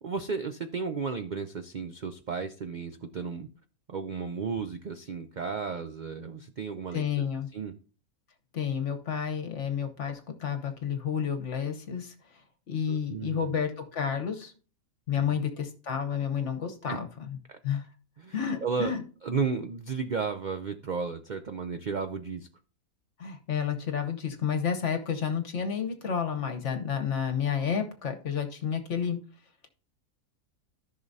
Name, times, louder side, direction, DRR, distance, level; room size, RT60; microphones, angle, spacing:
voice 1, 0.0-3.5 3.9-7.1 7.5-7.7 12.9-13.6 15.2-15.4 16.9-17.0 17.5-17.6 18.2-18.3 18.6-18.9 19.2-22.5, right 5 dB, 85° right, 8 dB, 0.4 m, -33 dB
voice 2, 6.9-7.5 8.5-12.1 12.7-14.5 15.1-17.4 17.6-17.9 18.3-19.0 23.2-29.2, left 7 dB, 55° left, 6 dB, 1.3 m, -30 dB
14.0 x 6.0 x 2.7 m, 0.40 s
omnidirectional pair, 1.5 m